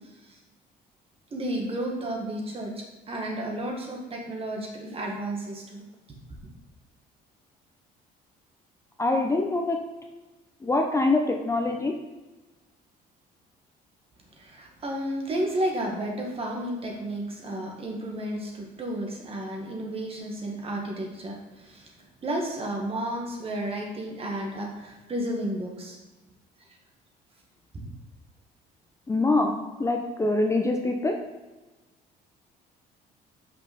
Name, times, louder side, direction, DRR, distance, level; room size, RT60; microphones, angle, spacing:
voice 1, 1.3-6.2 14.4-21.9 22.2-26.0 27.7-27.8, right 1 dB, 35° right, 0 dB, 1.7 m, -32 dB
voice 2, 9.0-9.8 10.6-11.9 29.1-29.5 29.8-31.1, left 2 dB, 15° left, 3 dB, 0.6 m, -24 dB
5.8 x 5.3 x 5.1 m, 1.2 s
cardioid pair, 110°, 17 cm